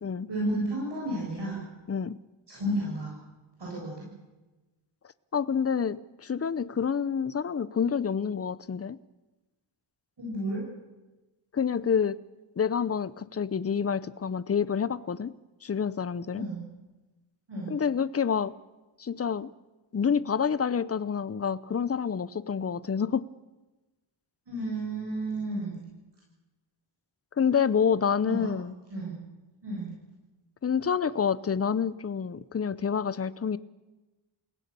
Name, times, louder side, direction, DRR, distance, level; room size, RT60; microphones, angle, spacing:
voice 1, 0.3-1.6 2.5-3.1 3.6-4.1 10.2-10.6 16.3-16.6 17.5-17.7 24.5-25.8 28.3-28.5 28.9-29.2 29.6-29.9, right 1 dB, 60° right, -4 dB, 7.9 m, -32 dB
voice 2, 5.3-9.0 11.5-12.2 12.6-15.3 15.6-16.5 17.7-18.5 19.0-19.5 19.9-23.2 27.4-28.8 30.6-33.6, left 7 dB, 30° left, 17 dB, 0.7 m, -28 dB
29.0 x 17.5 x 6.9 m, 1.1 s
wide cardioid pair, 110°, 47 cm